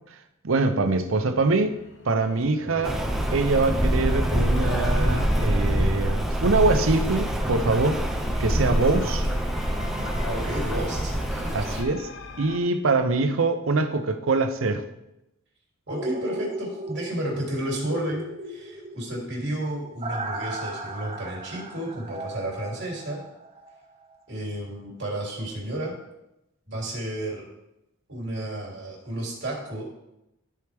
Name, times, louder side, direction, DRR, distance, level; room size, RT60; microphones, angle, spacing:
voice 1, 0.4-1.8 2.0-3.0 3.3-8.0 8.4-9.3 11.5-12.1 12.4-14.8, right 3 dB, 80° right, 8 dB, 0.7 m, -24 dB
sound 1, 1.2-12.6, left 4 dB, 60° left, 0.8 m, -43 dB
voice 2, 2.4-3.0 8.5-8.8 10.3-11.8 15.9-23.2 24.3-25.9 26.7-27.5 28.1-29.8, right 1 dB, 60° right, -3 dB, 3.2 m, -32 dB
Rain, 2.8-11.8, equal, ahead, 0.6 m, -25 dB
sound 2, 15.9-23.8 24.1-24.2, right 1 dB, 30° right, 0.8 m, -36 dB
13.5 x 4.7 x 3.5 m, 0.89 s
head